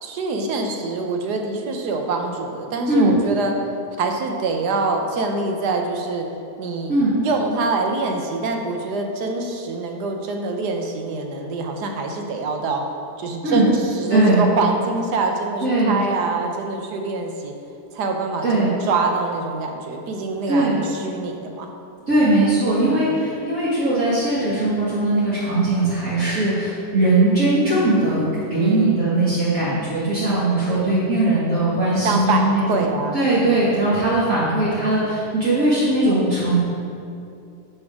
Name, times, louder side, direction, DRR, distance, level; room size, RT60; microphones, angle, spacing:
voice 1, 0.0-3.5 4.0-6.3 6.6-12.9 13.2-17.5 17.9-21.7 22.8-23.2 28.6-29.0 30.7-31.0 32.0-33.6, right 3 dB, 85° right, 3 dB, 1.5 m, -25 dB
voice 2, 6.9-7.2 13.4-13.7 14.1-14.5 15.6-16.0 18.4-18.8 20.5-20.8 22.1-36.6, right 2 dB, 55° right, -10 dB, 2.1 m, -19 dB
12.5 x 6.9 x 3.6 m, 2.6 s
omnidirectional pair, 1.7 m